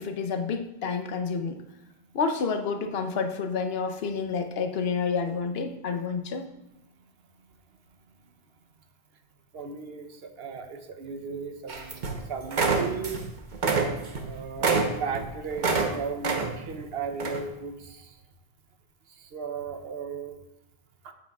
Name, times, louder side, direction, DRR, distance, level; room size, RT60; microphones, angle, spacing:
voice 1, 0.0-1.6 2.1-6.5, left 5 dB, 75° left, 7 dB, 0.9 m, -29 dB
voice 2, 9.5-13.2 14.1-18.2 19.1-20.4 21.0-21.1, right 5 dB, 75° right, 7 dB, 1.0 m, -36 dB
sound 1, 11.7-12.2 12.5-13.3 13.5-15.9 16.2-16.7 17.2-17.4, right 4 dB, 50° right, 1.0 m, -26 dB
9.3 x 8.2 x 2.3 m, 0.88 s
omnidirectional pair, 1.0 m